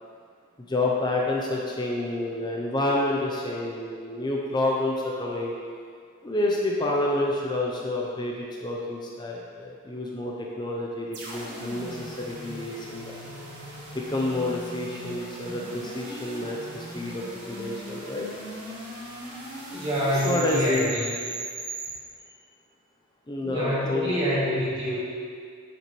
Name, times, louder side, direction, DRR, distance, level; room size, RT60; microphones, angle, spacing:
voice 1, 0.7-5.5 6.2-13.0 13.9-18.3 20.2-20.9 23.3-24.1, left 2 dB, 20° left, -2 dB, 0.5 m, -29 dB
sound 1, 11.1-21.9, right 1 dB, 50° right, 1.8 m, -38 dB
voice 2, 19.7-21.1 23.4-25.0, equal, 25° right, -8 dB, 1.9 m, -26 dB
8.1 x 7.4 x 3.0 m, 2.2 s
head